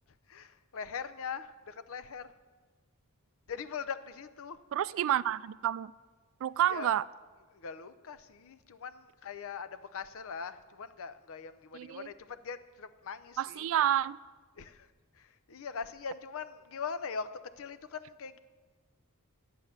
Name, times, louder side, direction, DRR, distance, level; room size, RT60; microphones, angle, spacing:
voice 1, 0.3-2.3 3.5-4.6 6.7-6.9 7.5-13.7 14.6-14.9 15.1-17.3 17.6-18.4, left 6 dB, 65° left, 13 dB, 0.6 m, -41 dB
voice 2, 4.7-5.9 6.4-7.0 11.7-12.1 13.4-14.2, right 11 dB, 65° right, 19 dB, 0.3 m, -29 dB
11.0 x 8.2 x 6.6 m, 1.3 s
head